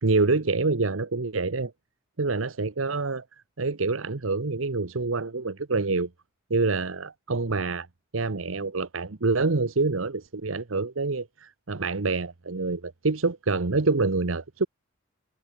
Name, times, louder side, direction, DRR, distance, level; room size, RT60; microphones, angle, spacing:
voice 1, 0.0-1.7 2.2-3.2 3.6-6.1 6.5-7.9 8.1-14.7, right 3 dB, 80° right, 1.1 m, -26 dB
head